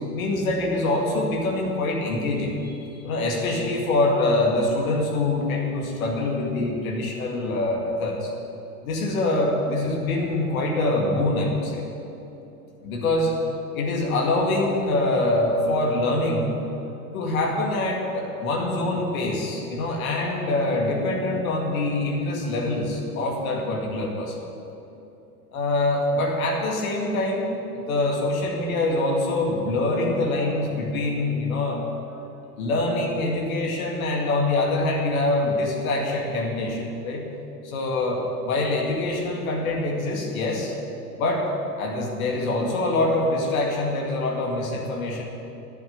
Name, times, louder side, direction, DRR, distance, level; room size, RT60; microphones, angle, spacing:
voice 1, 0.1-2.7 3.0-8.3 8.8-11.8 12.8-13.3 13.7-16.5 17.1-24.3 25.5-31.8 32.1-32.2 32.6-37.2 37.6-40.7 41.2-45.2, left 2 dB, 60° left, 0 dB, 2.2 m, -24 dB
10.5 x 8.0 x 9.0 m, 2.9 s
figure-of-eight pair, 80°, 46 cm